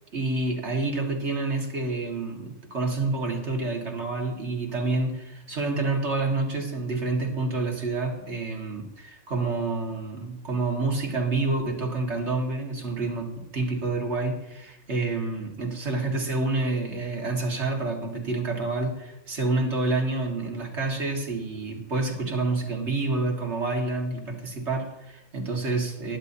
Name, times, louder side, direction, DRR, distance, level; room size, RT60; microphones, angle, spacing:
voice 1, 0.1-26.2, right 3 dB, 60° right, 1 dB, 2.3 m, -28 dB
20.0 x 10.5 x 2.8 m, 0.90 s
omnidirectional pair, 1.3 m